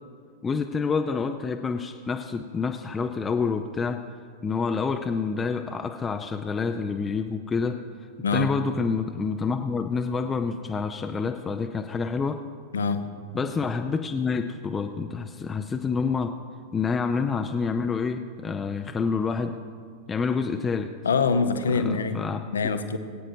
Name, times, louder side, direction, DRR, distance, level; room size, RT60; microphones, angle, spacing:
voice 1, 0.4-4.0 4.4-7.8 8.3-12.4 13.3-16.3 16.7-19.5 20.1-20.9 21.7-22.4, left 5 dB, 15° left, 5 dB, 0.5 m, -28 dB
voice 2, 21.0-22.2 22.5-23.0, left 4 dB, 70° left, 9 dB, 0.7 m, -24 dB
23.0 x 8.7 x 2.8 m, 2.1 s
figure-of-eight pair, 90°, 0 cm